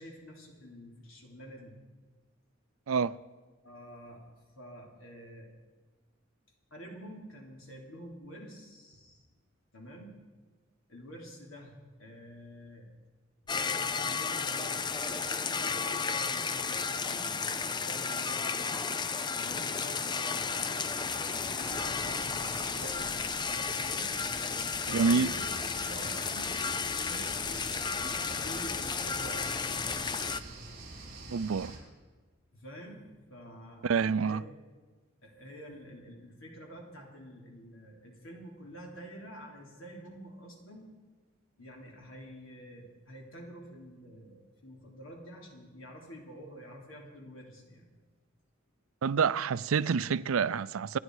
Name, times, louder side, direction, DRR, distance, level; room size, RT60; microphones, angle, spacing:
voice 1, 0.0-1.7 3.6-5.5 6.7-9.2 9.7-10.1 10.9-11.7 12.0-12.9 13.4-18.8 19.4-24.2 24.9-26.5 27.0-27.9 28.2-29.5 32.5-34.5 35.2-40.9 41.6-47.9, equal, 80° left, 3.4 m, -48 dB
sound 1, 13.5-30.4, left 5 dB, 20° left, 0.5 m, -33 dB
sound 2, 21.6-31.8, right 2 dB, 50° right, 4.5 m, -46 dB
voice 2, 24.9-25.3 31.3-31.8 33.8-34.4 49.0-51.0, right 5 dB, 90° right, 0.5 m, -27 dB
27.0 x 11.0 x 4.8 m
head